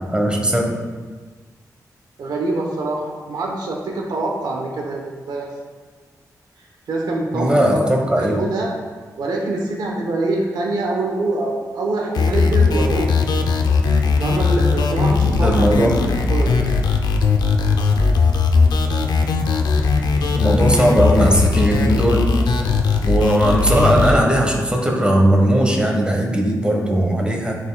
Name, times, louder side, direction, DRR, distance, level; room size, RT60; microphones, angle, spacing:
voice 1, 0.1-0.7 7.3-8.4 15.2-15.9 20.4-22.2 23.0-27.6, right 1 dB, 15° right, 1 dB, 1.1 m, -18 dB
voice 2, 2.2-5.5 6.9-7.8 8.2-8.7 9.2-13.1 14.2-15.9 16.3-16.6 19.8-19.9, right 2 dB, 80° right, -1 dB, 1.0 m, -24 dB
sound 1, 12.1-24.1, left 4 dB, 90° left, 0.5 m, -18 dB
10.5 x 4.6 x 2.3 m, 1.4 s
cardioid pair, 85°, 7 cm